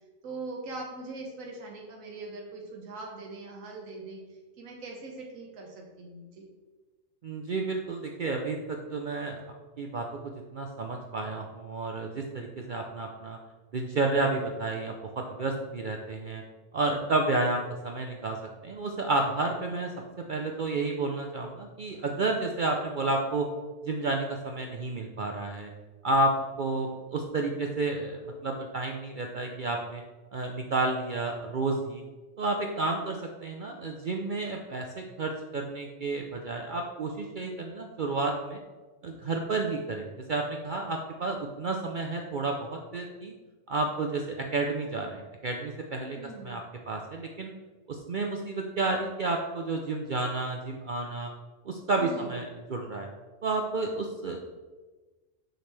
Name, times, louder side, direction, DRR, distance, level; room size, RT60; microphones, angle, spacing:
voice 1, 0.2-4.2 4.6-6.5 46.1-46.6 52.0-52.4, right 3 dB, 90° right, -1 dB, 1.3 m, -41 dB
voice 2, 7.2-9.4 9.8-10.1 10.5-13.4 13.7-16.4 16.7-18.4 18.6-19.9 20.3-23.5 23.8-25.7 26.0-30.0 30.3-32.0 32.4-38.6 39.0-43.3 43.7-47.5 47.9-51.3 51.7-53.1 53.4-54.4, right 2 dB, 55° right, 2 dB, 0.6 m, -31 dB
6.5 x 6.1 x 3.3 m, 1.3 s
omnidirectional pair, 1.3 m